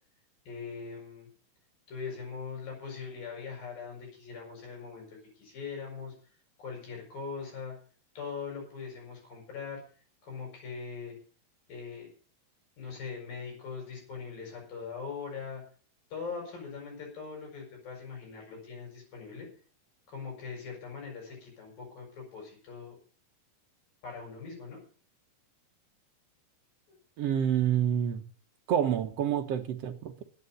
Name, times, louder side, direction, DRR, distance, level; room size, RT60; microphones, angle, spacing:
voice 1, 0.5-1.3 1.9-6.1 6.6-7.8 8.2-9.8 10.2-11.2 11.7-12.1 12.8-15.6 16.1-19.5 20.1-23.0 24.0-24.8 26.9-27.0, left 5 dB, 90° left, 8.7 m, -41 dB
voice 2, 27.2-28.2 28.7-30.2, right 9 dB, 65° right, 1.7 m, -28 dB
11.0 x 9.0 x 9.1 m
omnidirectional pair, 3.9 m